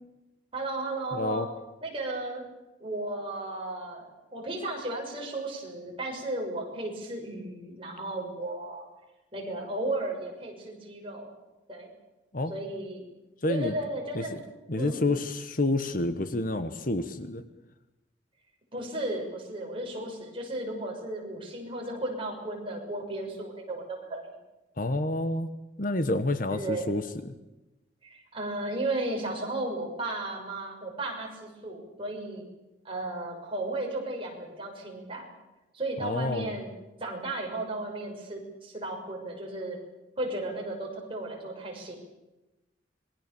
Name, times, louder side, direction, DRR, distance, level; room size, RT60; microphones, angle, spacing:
voice 1, 0.5-1.5 1.8-2.5 2.8-8.8 9.3-11.3 11.7-11.9 12.5-13.0 13.5-14.4 14.7-15.0 18.7-24.3 26.5-26.9 28.0-32.4 32.8-35.3 35.7-39.8 40.2-42.0, right 2 dB, 30° right, -1 dB, 6.5 m, -34 dB
voice 2, 1.1-1.5 12.3-12.5 13.4-13.7 14.1-14.2 14.7-17.4 24.8-25.5 25.8-27.0 36.0-36.6, left 2 dB, 45° left, 10 dB, 1.3 m, -28 dB
27.0 x 21.0 x 7.1 m, 1.0 s
head